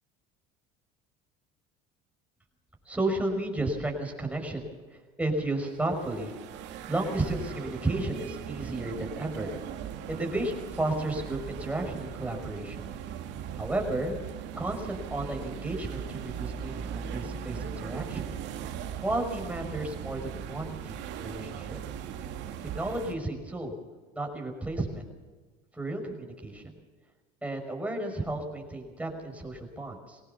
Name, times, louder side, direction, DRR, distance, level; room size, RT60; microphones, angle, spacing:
voice 1, 2.9-9.5 10.1-12.9 13.5-14.2 14.6-18.3 19.0-21.8 22.6-23.7 24.1-25.0 25.7-26.7 27.4-30.2, right 2 dB, 5° right, 2 dB, 5.8 m, -33 dB
sound 1, 5.7-23.1, right 8 dB, 65° right, 2.4 m, -39 dB
22.0 x 18.0 x 7.0 m, 1.3 s
supercardioid pair, 105°, 20 cm